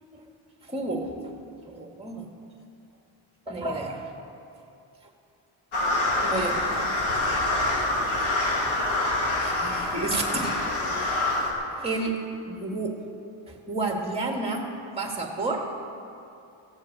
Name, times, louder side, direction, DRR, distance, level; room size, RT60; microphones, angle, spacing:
voice 1, 0.6-1.3 1.7-2.3 3.5-4.3 6.2-6.9 8.2-8.3 9.4-10.6 11.0-11.2 11.8-12.2 12.5-13.0 13.5-14.7 15.0-15.7, right 2 dB, 10° right, 1 dB, 2.0 m, -31 dB
sound 1, 5.7-11.5, left 2 dB, 70° left, 2.6 m, -26 dB
15.5 x 8.3 x 7.6 m, 2.6 s
cardioid pair, 105°, 50 cm